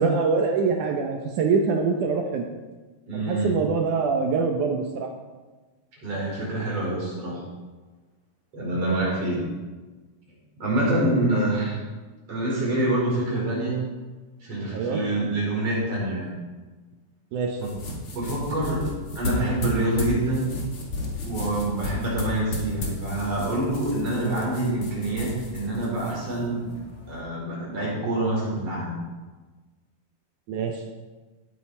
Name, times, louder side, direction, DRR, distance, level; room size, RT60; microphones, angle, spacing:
voice 1, 0.0-2.4 3.1-5.1 11.3-11.4 14.7-15.0 17.3-17.6 30.5-30.8, right 4 dB, 90° right, 2 dB, 1.7 m, -24 dB
voice 2, 3.1-3.6 6.0-7.4 8.5-9.5 10.6-11.8 12.3-13.8 14.4-16.3 17.6-17.7 18.1-18.9 19.2-20.5 21.2-26.7 27.1-29.0, right 1 dB, 35° right, -5 dB, 5.4 m, -26 dB
sound 1, 17.5-27.2, left 2 dB, 40° left, 2.2 m, -34 dB
17.0 x 9.4 x 4.4 m, 1.3 s
omnidirectional pair, 5.0 m